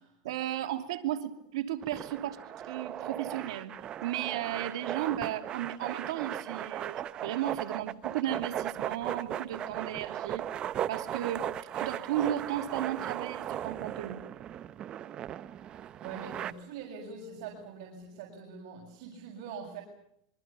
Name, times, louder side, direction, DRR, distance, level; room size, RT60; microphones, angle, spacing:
voice 1, 0.2-3.7 4.0-10.4 10.9-11.5 11.8-14.2, right 12 dB, 85° right, 6 dB, 2.7 m, -34 dB
sound 1, 1.8-16.5, right 10 dB, 30° right, 0.9 m, -37 dB
voice 2, 16.0-19.8, right 5 dB, 65° right, -1 dB, 6.7 m, -43 dB
26.0 x 24.0 x 6.9 m, 0.74 s
supercardioid pair, 145°, 3 cm